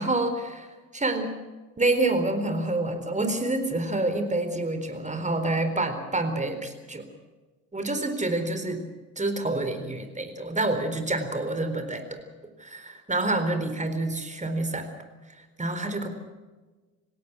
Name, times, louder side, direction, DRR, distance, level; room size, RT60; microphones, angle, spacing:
voice 1, 0.0-1.3 1.8-7.1 7.7-8.9 9.2-12.2 12.6-14.9 15.6-16.1, right 2 dB, 20° right, 7 dB, 4.1 m, -27 dB
28.0 x 17.0 x 6.2 m, 1.3 s
hypercardioid pair, 55°, 41 cm